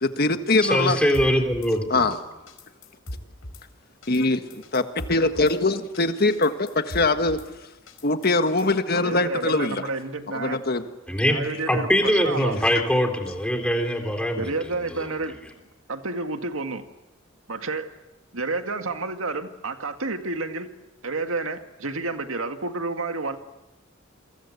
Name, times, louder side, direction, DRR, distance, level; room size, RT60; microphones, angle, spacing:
voice 1, 0.0-1.0 1.9-2.2 4.1-4.4 4.7-7.4 8.0-9.8 10.3-10.8, left 2 dB, 50° left, 8 dB, 1.6 m, -22 dB
voice 2, 0.6-2.1 11.1-14.5 15.0-15.1, equal, 5° left, 4 dB, 3.5 m, -23 dB
Drum kit / Snare drum, 1.1-1.7 2.1-2.2 2.5-3.6 4.0-4.2 4.5-5.6 5.9-6.0 6.3-7.5 7.9-8.8, left 1 dB, 85° left, 5.2 m, -39 dB
voice 3, 8.9-10.6 11.3-12.7 14.4-15.4 15.9-16.8 17.5-18.0 18.3-20.7 21.0-23.4, right 3 dB, 85° right, 7 dB, 2.0 m, -30 dB
28.5 x 23.5 x 8.3 m, 1.0 s
head